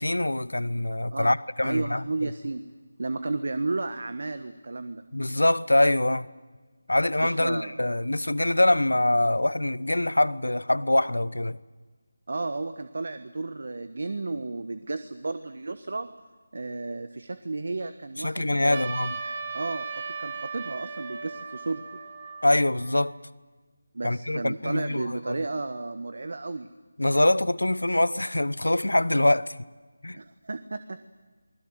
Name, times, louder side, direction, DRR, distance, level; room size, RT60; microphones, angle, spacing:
voice 1, 0.0-2.3 5.1-6.3 6.9-11.6 18.2-19.1 22.4-23.1 24.0-25.4 27.0-29.6 30.0-30.2, left 1 dB, 85° left, 0.9 m, -24 dB
voice 2, 1.6-2.6 3.0-5.0 7.2-7.8 12.3-16.1 16.5-18.9 19.5-19.9 20.2-21.8 23.9-26.7 30.1-31.0, right 3 dB, 60° right, 1.2 m, -33 dB
Trumpet, 18.7-23.2, right 4 dB, 35° right, 5.1 m, -37 dB
28.0 x 21.0 x 7.9 m
figure-of-eight pair, 160°, 0 cm